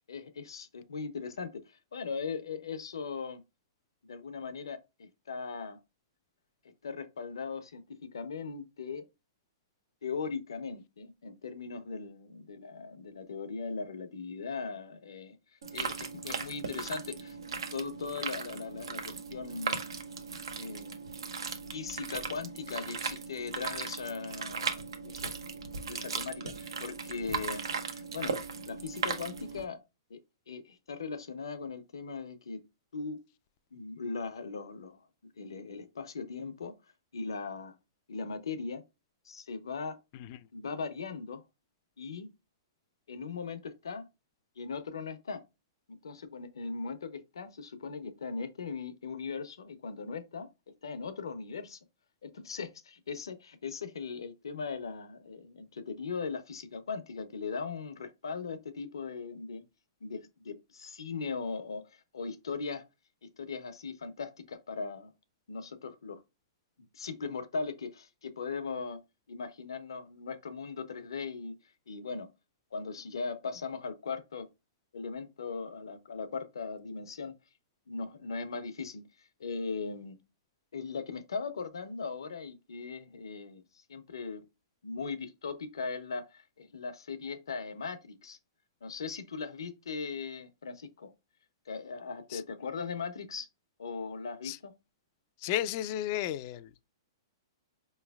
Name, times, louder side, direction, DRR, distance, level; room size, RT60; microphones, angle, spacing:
voice 1, 0.1-3.4 4.0-5.8 6.8-9.1 10.0-15.4 15.7-17.4 17.7-19.9 20.6-21.0 21.7-25.3 25.8-27.6 27.9-28.3 28.6-29.8 30.1-30.2 30.5-32.6 32.9-33.2 33.7-35.1 35.4-36.7 37.1-37.8 38.1-38.8 39.2-40.0 40.5-41.4 42.0-42.3 43.1-44.1 44.6-45.4 45.9-50.5 50.8-51.8 52.2-59.6 60.0-62.8 63.2-65.1 65.5-66.2 66.8-69.0 69.3-71.5 71.9-72.3 72.7-74.5 74.9-77.3 77.9-80.2 80.7-84.4 84.8-88.4 88.8-91.1 91.7-93.5 93.8-94.7, left 5 dB, 90° left, 0.8 m, -39 dB
sound 1, 15.6-29.6, right 5 dB, 85° right, 0.8 m, -37 dB
voice 2, 95.4-96.7, left 12 dB, 40° left, 0.3 m, -33 dB
4.8 x 3.1 x 2.3 m
hypercardioid pair, 140°, 2 cm